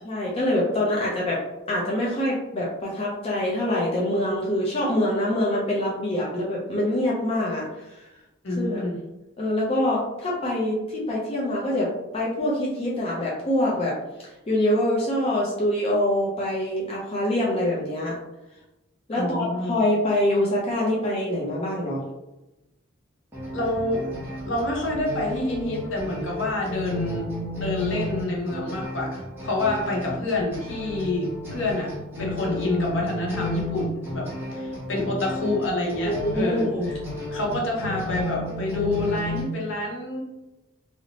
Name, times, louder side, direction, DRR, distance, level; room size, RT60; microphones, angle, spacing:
voice 1, 0.0-1.4 1.7-8.0 8.6-8.8 9.4-14.0 14.5-18.1 19.1-22.0 36.0-36.9, left 1 dB, 30° left, -4 dB, 0.5 m, -25 dB
voice 2, 8.4-9.0 19.1-19.8 23.5-24.0 24.5-27.3 27.5-31.9 32.2-36.7 37.3-40.2, left 2 dB, 65° left, -2 dB, 0.7 m, -27 dB
sound 1, 23.3-39.4, left 1 dB, 10° right, 0.7 m, -33 dB
2.8 x 2.0 x 2.8 m, 0.98 s
head